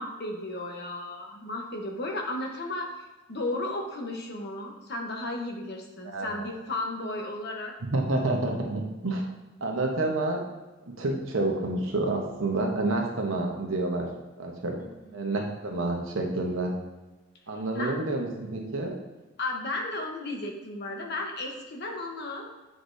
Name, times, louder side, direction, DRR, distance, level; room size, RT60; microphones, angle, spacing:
voice 1, 0.0-7.7 14.8-15.2 17.7-18.0 19.4-22.5, left 2 dB, 50° left, 1 dB, 1.0 m, -34 dB
voice 2, 6.0-6.5 7.9-9.3 9.6-10.4 11.0-14.1 14.4-14.7 15.1-16.7 17.5-18.9, right 2 dB, 65° right, 1 dB, 1.0 m, -28 dB
8.0 x 5.0 x 2.7 m, 1.1 s
head